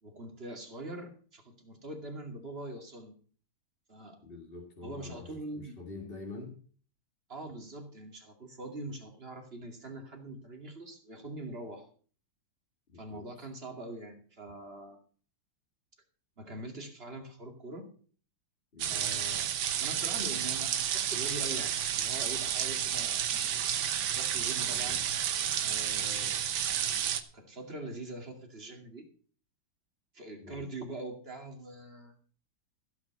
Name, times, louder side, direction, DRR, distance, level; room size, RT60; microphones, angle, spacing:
voice 1, 0.0-3.1 3.9-4.2 4.8-5.7 7.3-11.9 12.9-15.0 16.4-17.9 18.9-23.6 24.2-25.0 25.6-26.4 27.3-29.1 30.1-32.1, right 2 dB, 30° right, 3 dB, 2.6 m, -43 dB
voice 2, 4.2-6.5 12.9-13.2 18.7-19.0 24.8-25.0 30.4-30.6, left 3 dB, 30° left, 0 dB, 2.0 m, -46 dB
sound 1, 18.8-27.2, right 9 dB, 80° right, 1.8 m, -31 dB
16.0 x 5.9 x 7.1 m, 0.44 s
omnidirectional pair, 2.1 m